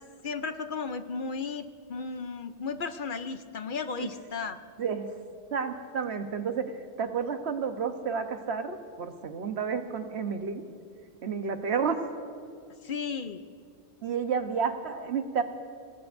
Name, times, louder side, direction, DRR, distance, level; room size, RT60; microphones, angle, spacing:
voice 1, 0.2-4.6 12.8-13.4, left 5 dB, 55° left, 9 dB, 0.7 m, -34 dB
voice 2, 5.5-6.7 7.0-10.6 11.2-12.0 14.0-15.4, right 6 dB, 70° right, 7 dB, 1.2 m, -31 dB
26.5 x 18.0 x 2.6 m, 2.3 s
omnidirectional pair, 1.1 m